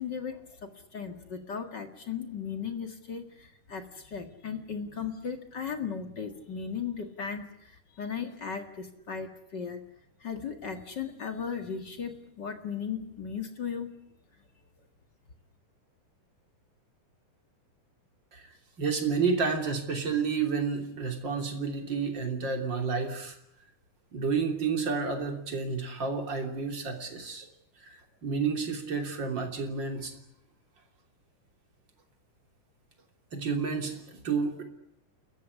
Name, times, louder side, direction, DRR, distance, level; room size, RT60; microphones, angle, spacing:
voice 1, 0.0-9.9 10.2-14.1, left 6 dB, 40° left, 6 dB, 2.1 m, -37 dB
voice 2, 18.3-23.3 24.1-27.5 27.8-30.1 33.3-34.6, right 5 dB, 35° right, 4 dB, 3.6 m, -30 dB
29.0 x 15.0 x 9.8 m, 0.75 s
omnidirectional pair, 3.7 m